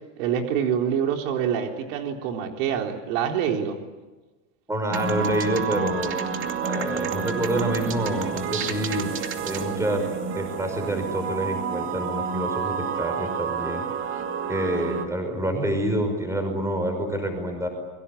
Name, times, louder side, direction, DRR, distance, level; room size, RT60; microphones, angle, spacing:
voice 1, 0.2-3.8, right 8 dB, 70° right, 3 dB, 4.0 m, -26 dB
voice 2, 4.7-6.1 6.6-9.1 9.5-10.0 10.3-13.8 14.5-17.7, right 1 dB, 5° right, 5 dB, 5.5 m, -27 dB
sound 1, 4.9-15.1, right 6 dB, 30° right, 2.5 m, -29 dB
29.0 x 23.0 x 8.6 m, 1.2 s
cardioid pair, 165°, 41 cm